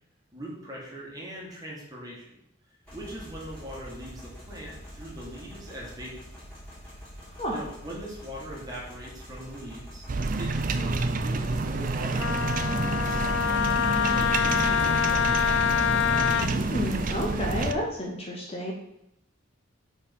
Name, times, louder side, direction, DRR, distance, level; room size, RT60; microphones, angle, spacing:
voice 1, 0.3-2.4 2.9-6.1 7.5-10.0 10.4-13.2 13.7-15.2, right 1 dB, 20° right, -4 dB, 1.8 m, -41 dB
sound 1, 2.8-17.1, equal, 5° left, 2.7 m, -44 dB
sound 2, 10.1-17.7, right 3 dB, 40° right, 0.4 m, -28 dB
Wind instrument woodwind instrument, 12.2-16.5, left 9 dB, 65° left, 0.3 m, -25 dB
voice 2, 16.4-18.7, left 1 dB, 30° left, -1 dB, 0.9 m, -31 dB
5.2 x 4.5 x 5.5 m, 0.81 s
head